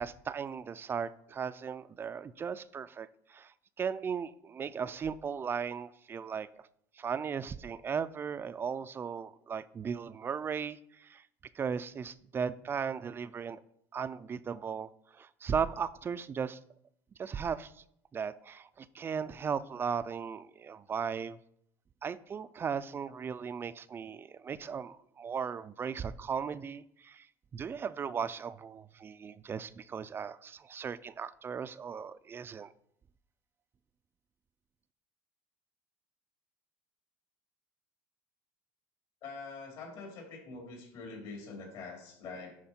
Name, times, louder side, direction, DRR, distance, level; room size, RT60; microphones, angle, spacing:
voice 1, 0.0-3.5 3.8-6.5 7.0-11.2 11.5-13.6 13.9-16.6 17.2-17.7 18.1-21.4 22.0-27.3 27.5-32.7, right 6 dB, 25° right, 15 dB, 0.4 m, -37 dB
voice 2, 39.2-42.6, left 4 dB, 60° left, 0 dB, 3.4 m, -44 dB
10.5 x 4.5 x 4.4 m, 0.71 s
cardioid pair, 125°, 9 cm